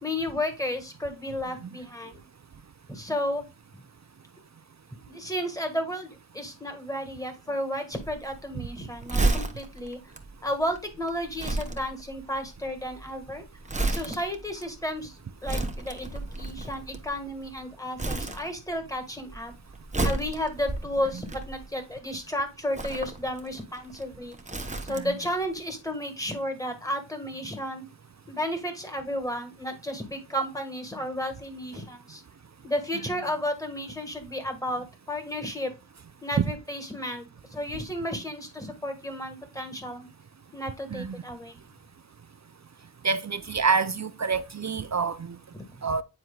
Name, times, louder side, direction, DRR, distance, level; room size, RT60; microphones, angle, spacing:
voice 1, 0.0-2.2 2.9-3.4 3.7-3.8 5.0-10.0 10.4-13.5 13.9-19.5 20.0-24.4 24.8-27.9 28.3-32.2 32.6-35.7 36.2-40.1 40.5-41.5 45.5-45.9, left 1 dB, 10° left, 1.6 m, -33 dB
Crumpling crinkling, 7.9-17.6 18.0-18.9 19.2-21.9 22.6-25.3 25.6-25.7, right 2 dB, 15° right, 0.9 m, -32 dB
voice 2, 43.0-45.4 45.8-46.0, right 5 dB, 40° right, 0.5 m, -27 dB
9.3 x 4.3 x 2.3 m
wide cardioid pair, 60°, 44 cm